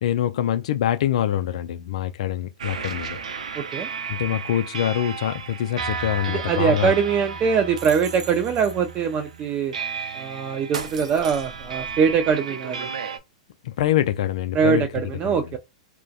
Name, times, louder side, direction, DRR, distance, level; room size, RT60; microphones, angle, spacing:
voice 1, 0.0-3.2 4.1-6.9 13.6-15.6, left 11 dB, 65° left, 0.4 m, -25 dB
sound 1, 2.6-13.2, right 6 dB, 85° right, 0.5 m, -33 dB
voice 2, 3.6-3.9 6.3-9.7 10.1-12.9 14.5-15.6, right 6 dB, 30° right, 0.4 m, -22 dB
2.5 x 2.1 x 2.4 m
hypercardioid pair, 115°, 4 cm